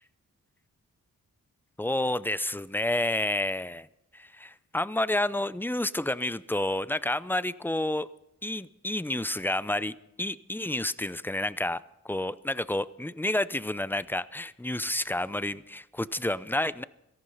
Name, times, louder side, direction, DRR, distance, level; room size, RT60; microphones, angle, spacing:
voice 1, 1.8-3.9 4.1-8.1 8.4-16.8, left 1 dB, 5° left, 16 dB, 0.6 m, -30 dB
17.5 x 14.0 x 5.5 m, 0.83 s
cardioid pair, 75°, 32 cm